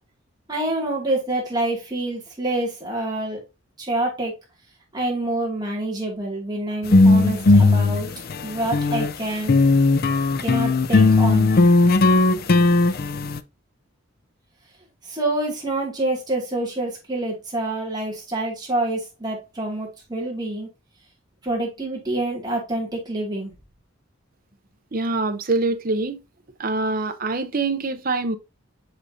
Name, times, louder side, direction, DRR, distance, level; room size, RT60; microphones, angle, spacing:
voice 1, 0.5-3.4 3.8-4.4 4.9-8.1 8.4-9.6 10.4-11.5 15.0-20.7 21.4-23.5, right 2 dB, 20° right, 2.4 m, -27 dB
sound 1, 6.8-9.1 9.5-13.4, left 3 dB, 45° left, 0.4 m, -17 dB
voice 2, 24.9-26.2 26.6-28.4, right 3 dB, 45° right, 0.7 m, -24 dB
7.3 x 5.0 x 2.7 m
head